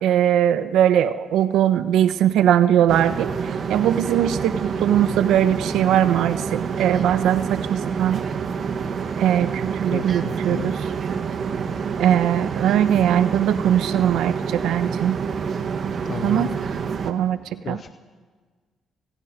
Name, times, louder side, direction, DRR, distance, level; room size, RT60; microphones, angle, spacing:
voice 1, 0.0-8.2 9.2-10.8 12.0-15.2 16.2-16.5 17.0-17.8, right 10 dB, 85° right, 12 dB, 1.0 m, -20 dB
sound 1, 2.9-17.1, right 6 dB, 55° right, 2.0 m, -27 dB
voice 2, 9.9-10.7 16.1-16.5 17.6-17.9, left 6 dB, 45° left, 12 dB, 0.7 m, -32 dB
29.5 x 29.0 x 5.2 m, 1.5 s
cardioid pair, 90°, 0 cm